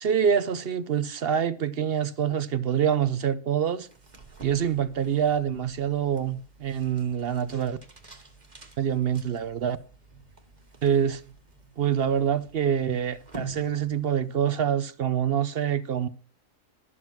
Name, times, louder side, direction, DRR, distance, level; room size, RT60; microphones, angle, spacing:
voice 1, 0.0-3.9 4.4-7.8 8.8-9.8 10.8-11.2 11.8-16.1, right 8 dB, 55° right, 0.7 m, -26 dB
sound 1, 3.8-14.4, right 4 dB, 25° right, 1.8 m, -46 dB
12.5 x 7.8 x 6.0 m
omnidirectional pair, 1.7 m